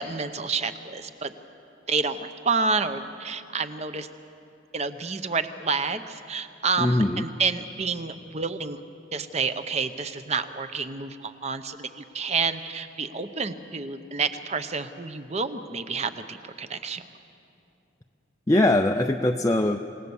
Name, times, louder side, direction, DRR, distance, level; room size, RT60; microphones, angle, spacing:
voice 1, 0.0-1.3 1.9-4.1 4.7-8.8 9.1-17.0, right 4 dB, 30° right, 10 dB, 0.8 m, -29 dB
voice 2, 6.8-7.3 18.5-19.8, left 1 dB, 15° left, 3 dB, 0.5 m, -21 dB
27.5 x 18.0 x 7.1 m, 2.7 s
head